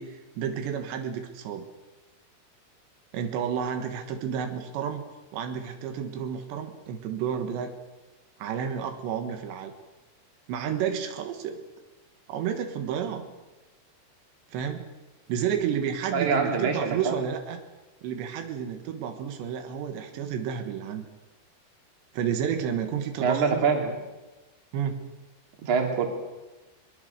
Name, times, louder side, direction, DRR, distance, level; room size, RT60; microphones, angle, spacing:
voice 1, 0.0-1.7 3.1-5.0 5.3-7.8 8.4-9.7 10.5-11.6 12.3-13.3 14.5-14.9 15.3-17.6 18.0-21.1 22.1-23.7 24.7-25.1, right 8 dB, 85° right, 6 dB, 3.7 m, -31 dB
voice 2, 16.1-17.1 23.2-23.9 25.6-26.1, right 5 dB, 50° right, 2 dB, 4.1 m, -25 dB
22.5 x 22.0 x 6.7 m, 1.1 s
omnidirectional pair, 4.9 m